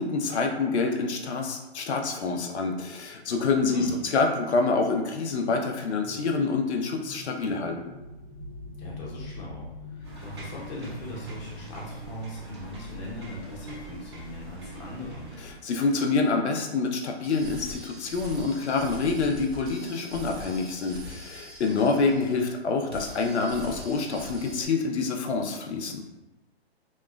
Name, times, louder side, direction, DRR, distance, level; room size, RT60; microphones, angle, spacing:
voice 1, 0.0-3.8 4.1-7.8 15.6-26.0, left 4 dB, 85° left, 3 dB, 0.5 m, -27 dB
voice 2, 3.7-4.1 8.8-15.3, left 1 dB, 40° left, -4 dB, 0.8 m, -40 dB
sound 1, 6.0-12.2, left 2 dB, 5° left, 0.7 m, -43 dB
sound 2, 10.0-15.5, right 1 dB, 25° right, 0.4 m, -43 dB
sound 3, 17.2-22.6 22.9-24.7, left 1 dB, 70° right, 0.8 m, -43 dB
2.9 x 2.0 x 2.3 m, 1.0 s
hypercardioid pair, 145°, 33 cm